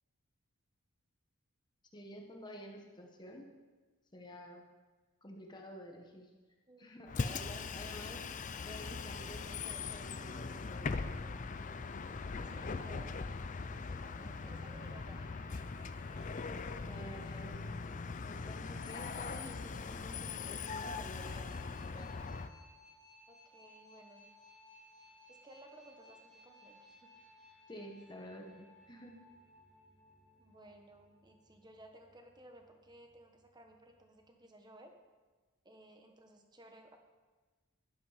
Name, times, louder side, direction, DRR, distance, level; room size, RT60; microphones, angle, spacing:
voice 1, 1.9-3.5 4.1-4.6 5.2-6.3 6.8-8.2 8.6-11.3 12.6-12.8 16.8-17.6 18.3-22.1 27.7-29.1, equal, 20° left, 1 dB, 1.2 m, -50 dB
voice 2, 6.7-7.3 12.4-13.2 13.8-15.6 23.3-24.3 25.3-27.1 30.4-34.9 35.6-37.0, right 1 dB, 20° right, 4 dB, 1.2 m, -58 dB
Bus, 7.1-22.5, left 4 dB, 35° left, 0.5 m, -41 dB
Trumpet, 13.4-17.8, equal, 75° right, 4.2 m, -65 dB
sound 1, 21.0-34.3, left 1 dB, ahead, 3.1 m, -62 dB
11.5 x 11.5 x 5.0 m, 1.3 s
head